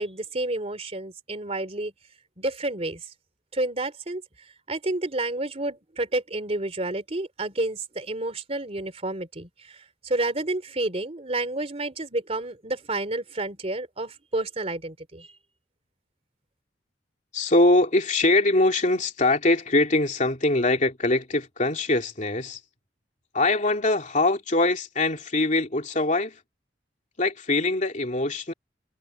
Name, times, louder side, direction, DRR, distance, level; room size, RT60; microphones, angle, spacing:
voice 1, 0.0-1.9 2.4-3.1 3.5-4.2 4.7-15.3, right 2 dB, 35° right, 3.0 m, -30 dB
voice 2, 17.3-22.6 23.3-26.4 27.2-28.5, left 2 dB, 45° left, 2.9 m, -23 dB
head